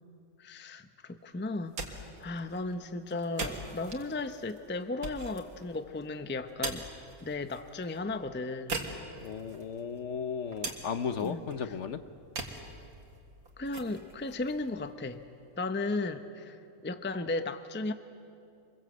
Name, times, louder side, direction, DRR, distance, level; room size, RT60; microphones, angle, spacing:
voice 1, 0.4-6.8 7.2-8.9 11.2-11.7 13.6-15.2 15.6-16.6 16.8-17.9, left 2 dB, 10° left, 9 dB, 0.5 m, -35 dB
sound 1, 1.5-15.4, right 3 dB, 85° right, 2.4 m, -43 dB
voice 2, 9.2-12.0, left 6 dB, 60° left, 11 dB, 1.1 m, -35 dB
26.5 x 21.5 x 7.9 m, 2.6 s
omnidirectional pair, 1.5 m